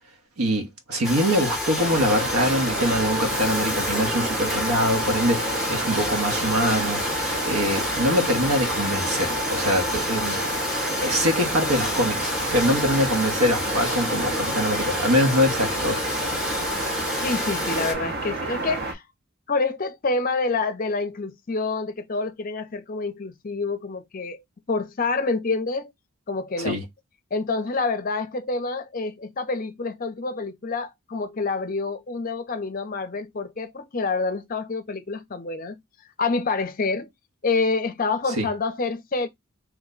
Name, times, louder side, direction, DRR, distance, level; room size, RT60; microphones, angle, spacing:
voice 1, 0.4-10.4 11.0-16.0 26.6-26.8 38.4-38.5, equal, 90° right, 1.1 m, -24 dB
Domestic sounds home sounds, 1.0-17.9, left 2 dB, ahead, 0.7 m, -29 dB
Meltwater Distant, 1.8-18.9, right 2 dB, 45° right, 0.6 m, -30 dB
voice 2, 17.2-19.0 19.5-24.4 24.7-25.9 26.3-26.8 27.3-35.8 36.2-37.1 37.4-39.3, left 3 dB, 40° left, 0.5 m, -27 dB
3.1 x 2.2 x 3.7 m
head